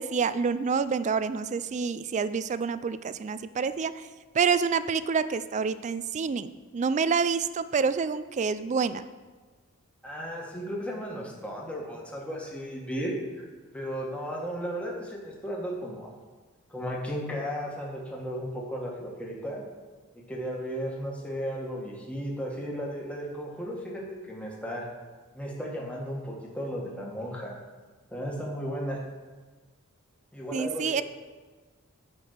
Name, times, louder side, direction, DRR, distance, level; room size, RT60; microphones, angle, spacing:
voice 1, 0.0-4.0 4.3-9.0 30.5-31.0, right 5 dB, 35° right, 14 dB, 0.3 m, -27 dB
voice 2, 10.0-13.4 13.7-16.1 16.7-19.6 20.1-24.9 25.3-27.5 28.1-29.0 30.3-31.0, equal, 5° left, -3 dB, 1.6 m, -35 dB
9.2 x 5.2 x 6.5 m, 1.3 s
head